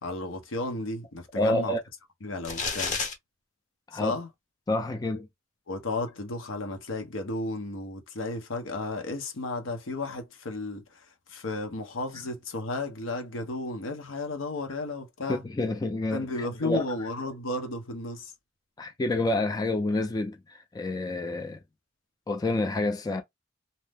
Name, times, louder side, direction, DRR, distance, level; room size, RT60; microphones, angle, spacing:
voice 1, 0.0-1.8 2.2-3.0 3.9-4.3 5.7-15.4 16.1-18.3, left 2 dB, 75° left, 0.8 m, -33 dB
voice 2, 1.4-1.8 3.9-4.1 4.7-5.3 15.3-16.8 18.8-21.6 22.3-23.2, left 2 dB, 20° left, 0.3 m, -28 dB
sound 1, 2.5-3.1, left 4 dB, 40° left, 0.7 m, -30 dB
2.7 x 2.0 x 3.3 m
head